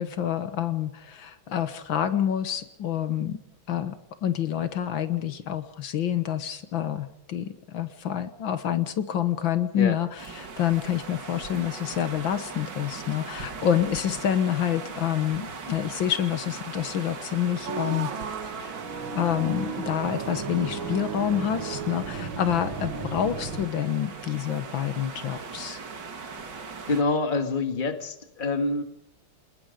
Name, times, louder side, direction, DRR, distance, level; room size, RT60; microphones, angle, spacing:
voice 1, 0.0-3.4 3.7-4.0 4.2-18.1 18.4-18.8 19.1-25.8, left 10 dB, 80° left, 10 dB, 2.0 m, -27 dB
sound 1, 10.2-27.0, right 4 dB, 60° right, 2.6 m, -40 dB
sound 2, 17.7-23.7, right 5 dB, 85° right, 2.4 m, -34 dB
voice 2, 26.9-28.8, left 3 dB, 25° left, 7 dB, 1.8 m, -26 dB
27.5 x 20.0 x 5.2 m, 0.75 s
omnidirectional pair, 2.1 m